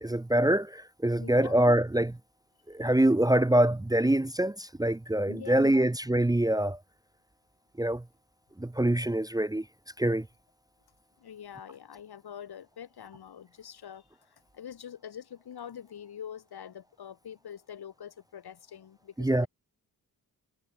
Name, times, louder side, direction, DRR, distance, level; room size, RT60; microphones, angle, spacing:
voice 1, 0.0-2.2 2.7-6.8 7.8-8.0 8.6-9.6 10.0-10.3 19.2-19.5, right 1 dB, 10° right, 0.8 m, -25 dB
voice 2, 1.2-1.6 5.3-5.9 11.2-19.5, left 9 dB, 75° left, 2.4 m, -45 dB
cardioid pair, 75°, 38 cm